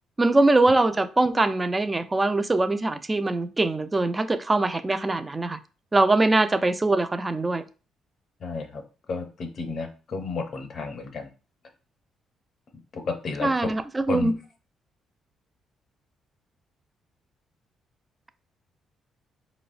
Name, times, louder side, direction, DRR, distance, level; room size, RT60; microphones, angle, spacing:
voice 1, 0.2-5.6 5.9-7.6 13.4-14.3, right 2 dB, 20° right, 0.3 m, -22 dB
voice 2, 8.4-8.8 9.1-11.3 12.9-13.5 14.1-14.3, left 4 dB, 55° left, 0.6 m, -32 dB
4.6 x 2.0 x 2.4 m
cardioid pair, 90°, 0 cm